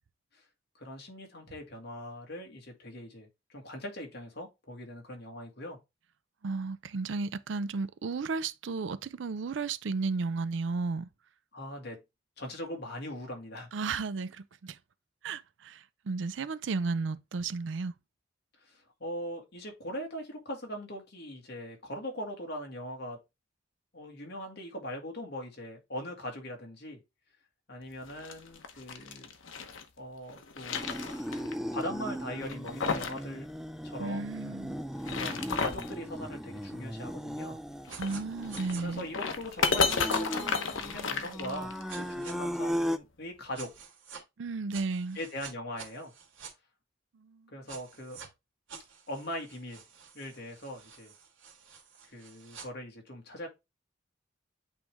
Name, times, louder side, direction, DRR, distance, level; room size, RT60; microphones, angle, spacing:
voice 1, 0.8-5.8 11.5-12.0 12.4-13.7 18.6-23.2 23.9-27.0 27.7-29.3 30.0-31.3 31.7-33.5 33.8-34.6 35.1-37.6 38.8-43.7 45.1-46.1 47.5-48.2 49.1-49.8 50.1-51.1 52.1-53.5, equal, 55° left, 1.9 m, -41 dB
voice 2, 6.4-11.1 13.7-14.8 15.2-17.9 34.0-34.8 38.0-39.0 44.4-45.2 47.2-47.5, right 4 dB, 70° right, 0.4 m, -33 dB
sound 1, 28.0-29.8 30.3-31.5 31.8-31.9 32.4-33.2 33.5-33.6 34.8-35.9 37.9-41.9, left 5 dB, 80° left, 0.9 m, -32 dB
sound 2, 30.7-43.0, equal, ahead, 0.4 m, -37 dB
sound 3, 37.9-38.2 38.5-38.8 39.9-40.2 41.9-42.3 43.5-44.2 44.7-46.5 47.7-48.3 48.7-52.7, right 6 dB, 90° right, 1.9 m, -48 dB
8.3 x 3.3 x 3.5 m
head